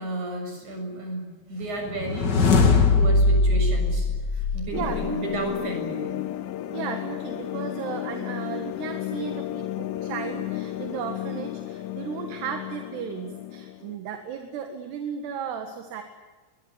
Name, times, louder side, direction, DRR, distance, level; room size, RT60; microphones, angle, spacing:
voice 1, 0.0-6.1, right 1 dB, 45° right, 4 dB, 8.3 m, -33 dB
sound 1, 1.9-5.2, left 3 dB, 35° left, 1.9 m, -21 dB
sound 2, 4.7-14.0, left 13 dB, 90° left, 3.3 m, -33 dB
voice 2, 4.7-5.2 6.7-16.0, right 8 dB, 75° right, 6 dB, 3.8 m, -35 dB
22.0 x 21.5 x 9.8 m, 1.3 s
omnidirectional pair, 4.9 m